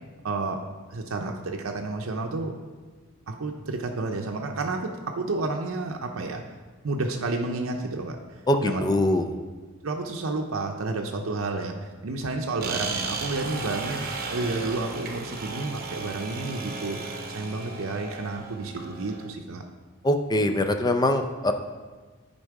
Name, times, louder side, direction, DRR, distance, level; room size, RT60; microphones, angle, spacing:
voice 1, 0.2-0.6 0.9-2.5 3.3-6.5 6.8-8.2 8.6-8.8 9.8-14.0 14.3-17.0 17.3-19.6, right 3 dB, 75° right, 2 dB, 0.6 m, -30 dB
voice 2, 8.5-9.2 20.0-21.5, left 1 dB, 20° left, 7 dB, 0.5 m, -23 dB
sound 1, 12.6-19.3, right 4 dB, 45° right, 0.8 m, -35 dB
9.9 x 4.1 x 4.7 m, 1.4 s
head